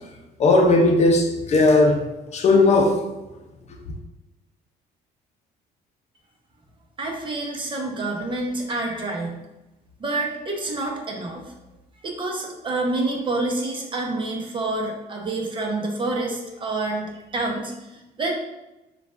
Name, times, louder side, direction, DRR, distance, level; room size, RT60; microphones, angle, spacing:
voice 1, 0.4-2.0 2.3-3.0, left 2 dB, 40° left, 3 dB, 0.6 m, -17 dB
voice 2, 7.0-9.4 10.0-11.5 12.0-18.3, right 2 dB, 30° right, 0 dB, 0.9 m, -28 dB
6.7 x 2.4 x 2.5 m, 0.99 s
cardioid pair, 110°, 17 cm